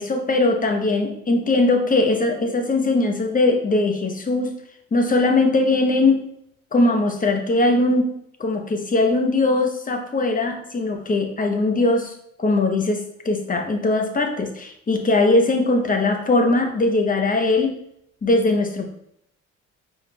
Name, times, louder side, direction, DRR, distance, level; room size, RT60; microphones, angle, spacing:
voice 1, 0.0-4.5 4.9-6.2 6.7-8.1 8.4-12.1 12.4-17.8 18.2-18.9, left 2 dB, 25° left, 4 dB, 0.8 m, -20 dB
5.0 x 4.4 x 2.3 m, 0.73 s
cardioid pair, 90°, 30 cm